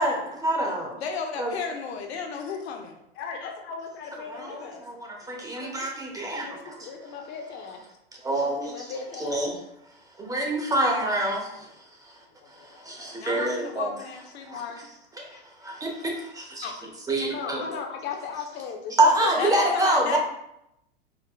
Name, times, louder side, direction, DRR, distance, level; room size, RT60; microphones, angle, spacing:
voice 1, 0.0-0.9 1.4-1.5 4.3-4.6 5.3-6.4 8.2-8.9 9.2-9.5 10.2-11.6 12.8-13.9 14.5-14.6 15.2-15.3 15.6-16.7 17.1-17.6 19.0-20.2, right 1 dB, 10° right, 0 dB, 0.7 m, -26 dB
voice 2, 1.0-3.0 13.2-14.9 16.6-16.8 19.4-20.2, left 6 dB, 75° left, 4 dB, 0.8 m, -33 dB
voice 3, 3.1-4.8 5.2-5.8 6.3-7.8 8.6-9.6 11.4-11.7 12.5-13.2 13.6-13.8 15.2-15.4 17.2-19.6, left 5 dB, 35° left, 3 dB, 0.8 m, -38 dB
4.7 x 3.6 x 2.2 m, 0.80 s
hypercardioid pair, 115°, 32 cm